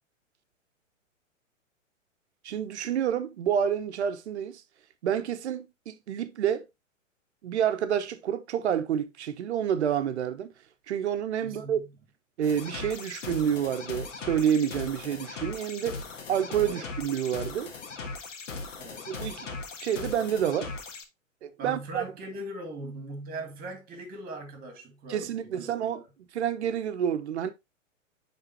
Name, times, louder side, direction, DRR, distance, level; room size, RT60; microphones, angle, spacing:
voice 1, 2.4-4.6 5.0-6.7 7.4-10.5 10.9-11.8 12.4-16.0 16.3-17.7 19.1-19.5 19.8-20.7 21.4-22.0 25.1-26.0 26.3-27.5, right 9 dB, 60° right, 0.9 m, -28 dB
voice 2, 11.4-11.9 16.6-16.9 18.8-19.1 21.6-26.0, right 2 dB, 20° right, 2.1 m, -40 dB
sound 1, 12.4-21.0, left 4 dB, 70° left, 1.5 m, -39 dB
9.7 x 3.7 x 2.8 m
figure-of-eight pair, 115°, 39 cm